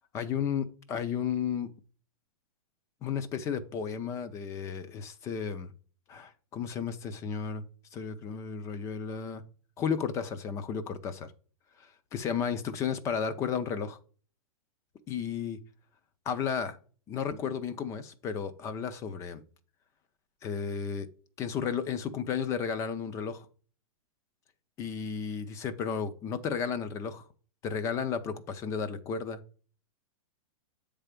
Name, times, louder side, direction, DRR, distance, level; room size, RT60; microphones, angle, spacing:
voice 1, 0.1-1.7 3.0-5.7 6.1-7.6 7.9-9.4 9.8-11.3 11.8-14.0 15.1-15.6 16.3-16.8 17.1-19.4 20.4-21.1 21.4-23.5 24.8-27.3 27.6-29.4, left 7 dB, 15° left, 0.4 m, -33 dB
8.0 x 3.4 x 5.0 m
hypercardioid pair, 160°, 18 cm